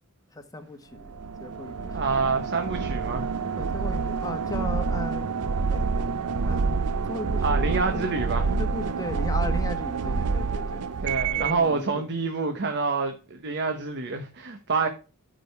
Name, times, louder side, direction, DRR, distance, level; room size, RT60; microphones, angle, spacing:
voice 1, 0.3-2.0 3.6-5.3 5.7-5.8 6.4-8.1 8.4-10.8 11.4-12.0, left 1 dB, 15° left, 1.3 m, -37 dB
sound 1, 1.0-11.7, right 4 dB, 80° right, 0.6 m, -27 dB
voice 2, 1.9-3.3 7.4-8.6 11.0-14.9, right 4 dB, 50° right, 1.1 m, -27 dB
12.5 x 5.1 x 3.4 m
head